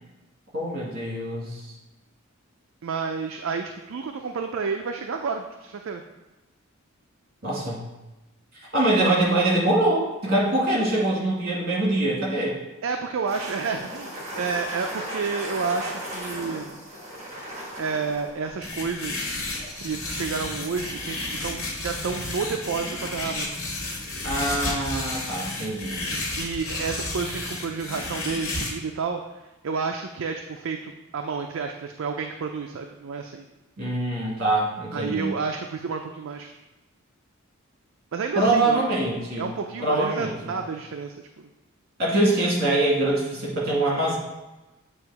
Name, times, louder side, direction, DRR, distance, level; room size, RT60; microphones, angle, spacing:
voice 1, 0.5-1.7 7.4-7.8 8.5-12.6 24.2-26.0 33.8-35.3 38.4-39.5 39.8-40.3 42.0-44.2, right 1 dB, 50° right, -4 dB, 1.9 m, -24 dB
voice 2, 2.8-6.0 12.8-16.8 17.8-19.3 19.8-23.6 26.1-29.2 29.6-33.5 34.9-36.5 38.1-38.8 39.4-41.5, right 5 dB, 65° right, 4 dB, 0.4 m, -30 dB
sound 1, 13.3-24.2, equal, 30° right, 1.5 m, -39 dB
sound 2, 18.6-28.7, left 2 dB, 75° left, 1.9 m, -32 dB
8.0 x 2.9 x 4.6 m, 1.0 s
head